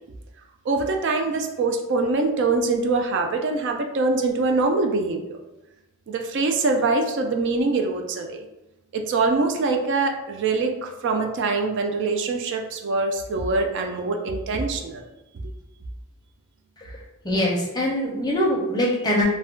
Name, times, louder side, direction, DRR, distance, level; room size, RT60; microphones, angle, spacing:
voice 1, 0.7-5.4 6.1-8.4 8.9-15.0, right 3 dB, 55° right, 4 dB, 0.3 m, -24 dB
voice 2, 17.2-19.2, left 1 dB, 20° left, -3 dB, 0.5 m, -23 dB
2.3 x 2.1 x 3.5 m, 0.98 s
head